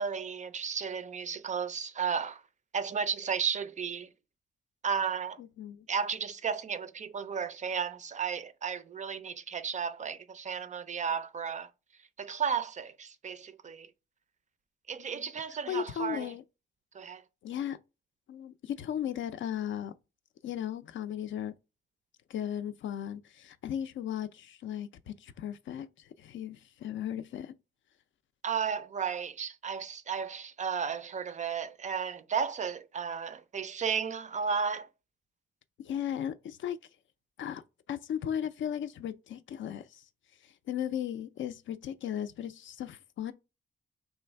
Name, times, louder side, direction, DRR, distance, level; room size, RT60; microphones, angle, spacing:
voice 1, 0.0-2.4 2.7-4.1 4.8-5.4 5.9-11.7 12.2-13.9 14.9-16.3 16.9-17.2 28.4-34.9, right 6 dB, 35° right, 0.4 m, -33 dB
voice 2, 5.4-5.9 15.0-15.3 15.7-16.4 17.4-17.8 18.3-19.9 20.4-21.5 22.3-27.5 35.8-36.8 37.4-37.6 37.9-40.0 40.4-43.3, left 9 dB, 70° left, 0.4 m, -36 dB
3.3 x 3.1 x 4.4 m
wide cardioid pair, 140°, 21 cm